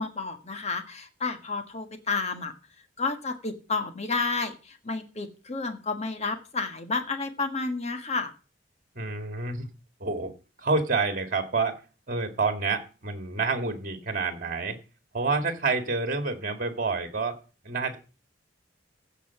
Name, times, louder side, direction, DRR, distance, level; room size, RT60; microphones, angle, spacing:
voice 1, 0.0-2.5 3.0-8.3, left 4 dB, 35° left, 7 dB, 1.5 m, -31 dB
voice 2, 9.0-9.7 10.0-10.3 10.6-11.7 12.1-14.8 15.1-17.4 17.6-18.0, right 4 dB, 45° right, 6 dB, 2.1 m, -28 dB
15.5 x 5.4 x 5.9 m, 0.34 s
head